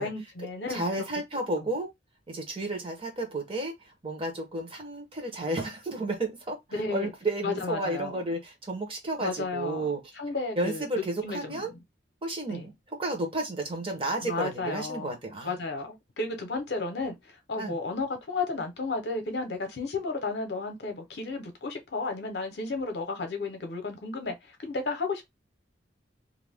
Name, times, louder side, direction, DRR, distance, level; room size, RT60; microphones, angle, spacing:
voice 1, 0.0-0.9 6.7-7.1 7.4-8.2 9.2-9.9 10.2-10.8 11.2-11.6 12.5-12.7 14.2-15.1 15.4-24.3 24.6-25.3, left 3 dB, 60° left, 0.7 m, -33 dB
voice 2, 0.7-1.9 2.3-10.1 10.6-11.7 12.2-15.5 17.6-17.8, right 2 dB, 30° right, 0.8 m, -32 dB
2.5 x 2.2 x 3.4 m
head